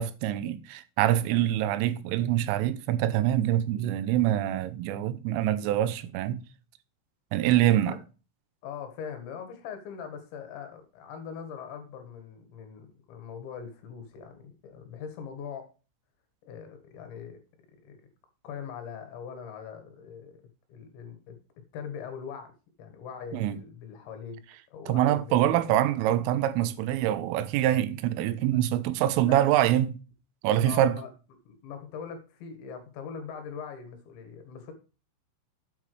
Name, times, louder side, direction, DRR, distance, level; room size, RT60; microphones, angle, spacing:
voice 1, 0.0-6.4 7.3-8.0 23.3-23.6 24.9-30.0 30.4-31.0, right 12 dB, 80° right, 3.2 m, -25 dB
voice 2, 8.6-15.7 16.4-17.4 17.8-18.0 18.4-20.4 20.7-22.5 22.8-24.4 24.7-25.5 28.5-28.8 29.2-29.5 30.6-31.1 31.5-34.7, left 7 dB, 70° left, 3.6 m, -41 dB
8.5 x 8.4 x 3.2 m
omnidirectional pair, 5.9 m